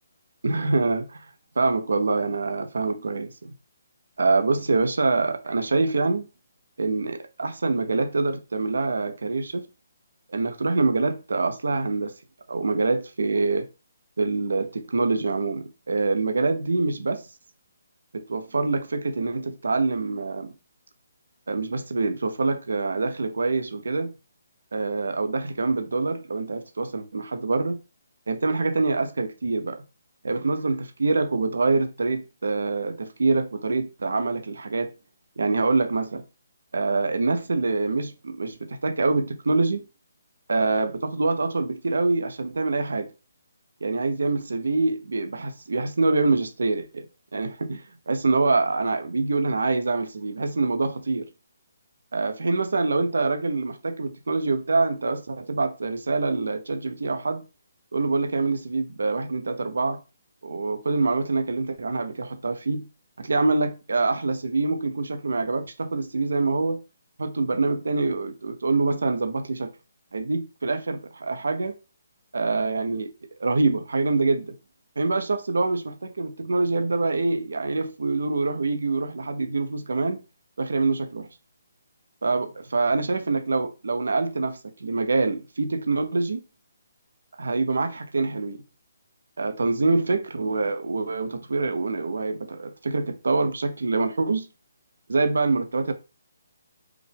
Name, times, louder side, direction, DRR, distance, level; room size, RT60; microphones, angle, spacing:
voice 1, 0.4-1.3 1.6-3.5 4.2-6.2 6.8-9.6 10.3-12.1 12.5-13.7 14.2-17.3 18.1-20.5 21.5-24.1 24.7-27.8 28.3-29.8 30.2-34.9 35.4-36.2 36.7-39.8 40.5-43.1 43.8-47.1 47.3-51.3 52.1-57.4 57.9-60.0 60.4-62.9 63.2-66.8 67.2-69.7 70.1-71.7 72.3-73.1 73.4-74.6 75.0-80.2 80.6-81.3 82.2-86.4 87.4-88.6 89.4-94.5 95.1-95.9, right 3 dB, 90° right, 0.7 m, -25 dB
4.9 x 2.2 x 3.4 m
hypercardioid pair, 175°, 0 cm